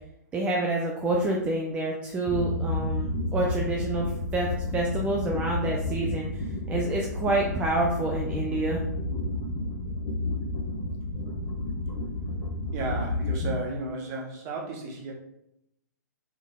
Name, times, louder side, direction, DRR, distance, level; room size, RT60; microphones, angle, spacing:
voice 1, 0.3-6.4 6.7-8.8, right 2 dB, 15° right, -1 dB, 0.4 m, -28 dB
sound 1, 2.3-13.5, left 2 dB, 25° left, 1.1 m, -31 dB
voice 2, 12.7-15.1, right 2 dB, 30° right, 0 dB, 0.9 m, -34 dB
3.5 x 3.5 x 2.3 m, 0.80 s
figure-of-eight pair, 120°, 10 cm